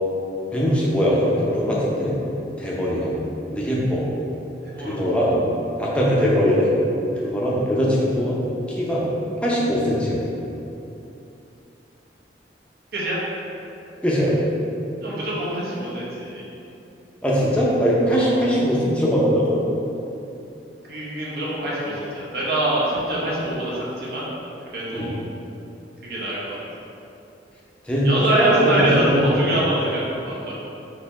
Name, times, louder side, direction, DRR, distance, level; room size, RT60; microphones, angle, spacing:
voice 1, 0.5-2.2 2.6-3.1 3.5-4.0 4.8-5.4 5.8-6.7 7.2-8.4 8.8-9.1 9.4-10.2 14.0-14.3 17.2-19.6 24.9-25.1 27.8-28.1 28.3-29.2 29.5-29.6, equal, 5° left, -6 dB, 0.6 m, -21 dB
voice 2, 4.6-5.0 12.9-13.2 15.0-16.4 18.1-18.3 20.9-24.3 24.7-25.1 26.0-26.6 28.0-30.5, right 1 dB, 60° right, -7 dB, 1.0 m, -24 dB
4.2 x 2.7 x 4.1 m, 2.8 s
head